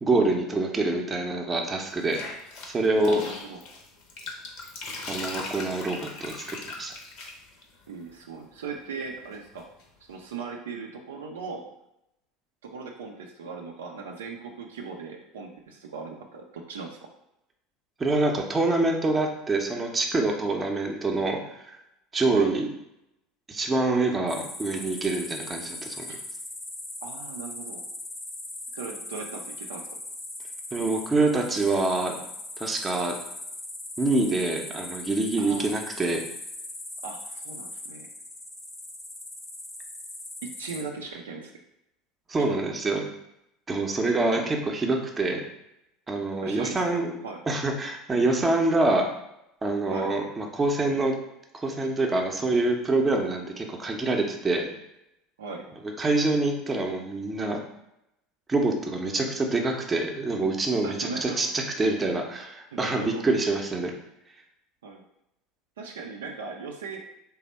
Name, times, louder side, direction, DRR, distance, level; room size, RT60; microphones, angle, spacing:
voice 1, 0.0-2.2 2.7-3.2 5.1-6.9 18.0-21.8 22.1-22.7 23.5-26.1 30.7-32.2 32.6-33.1 34.0-36.2 42.3-43.1 43.7-45.4 46.1-47.1 47.5-49.1 49.6-51.1 51.6-54.7 56.0-57.6 58.5-63.9, right 2 dB, 20° right, 2 dB, 0.6 m, -26 dB
sound 1, 1.9-8.1 9.1-9.8, left 3 dB, 60° left, 0.7 m, -39 dB
voice 2, 3.0-3.6 7.9-9.6 10.1-11.6 12.6-17.0 22.3-22.5 27.0-27.8 28.7-29.9 35.4-35.7 37.0-38.1 40.6-41.5 44.4-44.5 46.4-47.0 47.2-47.4 49.9-50.1 55.4-55.6 60.8-61.5 62.7-63.2 64.8-65.0 65.8-67.0, right 4 dB, 75° right, 1 dB, 0.4 m, -38 dB
sound 2, 24.3-40.8, left 1 dB, 20° left, 0.7 m, -39 dB
3.3 x 2.1 x 4.1 m, 0.83 s
figure-of-eight pair, 75°, 0 cm